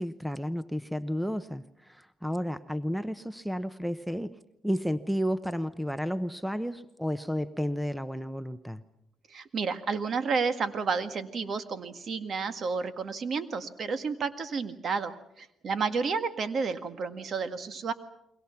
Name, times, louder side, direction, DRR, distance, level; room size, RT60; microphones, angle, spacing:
voice 1, 0.0-4.4 4.6-8.8, equal, ahead, 13 dB, 0.9 m, -32 dB
voice 2, 9.3-17.9, right 5 dB, 50° right, 10 dB, 1.8 m, -31 dB
29.5 x 23.0 x 5.9 m, 0.81 s
cardioid pair, 90°, 0 cm